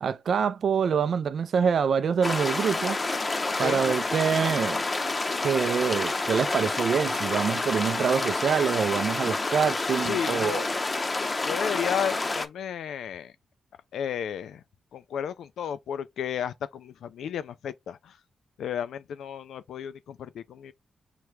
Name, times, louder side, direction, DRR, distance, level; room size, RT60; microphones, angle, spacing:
voice 1, 0.0-3.0 3.6-4.8 5.4-10.7, right 7 dB, 70° right, 0.4 m, -25 dB
sound 1, 2.2-12.5, left 3 dB, 35° left, 0.6 m, -28 dB
voice 2, 10.0-10.7 11.4-13.3 13.9-14.6 14.9-18.2 18.6-20.7, left 8 dB, 85° left, 0.3 m, -33 dB
5.9 x 2.2 x 3.1 m
cardioid pair, 65°, 0 cm